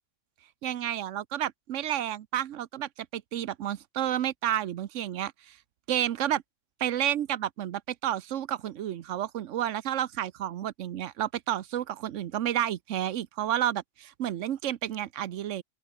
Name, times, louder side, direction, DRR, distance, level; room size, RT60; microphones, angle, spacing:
voice 1, 0.6-5.6 5.9-6.4 6.8-15.6, right 11 dB, 85° right, 1.1 m, -31 dB
open air
omnidirectional pair, 1.2 m